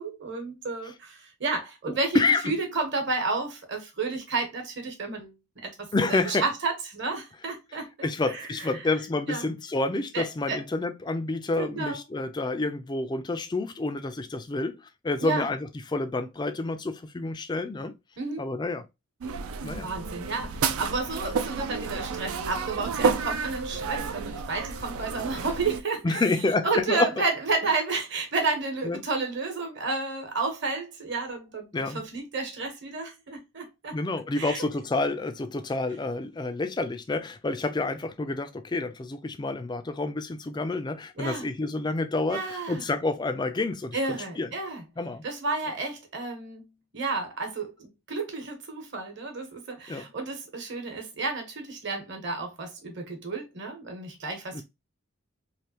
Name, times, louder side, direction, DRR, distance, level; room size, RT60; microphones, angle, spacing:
voice 1, 0.0-8.7 9.3-9.4 10.1-10.6 11.6-12.0 15.2-15.5 18.2-18.4 19.8-26.2 26.6-34.0 34.3-34.6 41.1-41.5 42.3-42.9 43.9-44.8 45.2-54.6, right 3 dB, 55° right, 1.1 m, -31 dB
voice 2, 1.9-2.6 5.9-6.4 8.0-17.9 18.4-18.8 19.6-19.9 26.0-27.1 28.8-29.0 31.7-32.0 33.9-44.5 45.0-45.2 49.9-50.0 54.5-54.6, left 3 dB, 20° left, 0.3 m, -29 dB
sound 1, 19.2-25.8, right 5 dB, 80° right, 0.4 m, -31 dB
3.3 x 2.6 x 2.9 m
head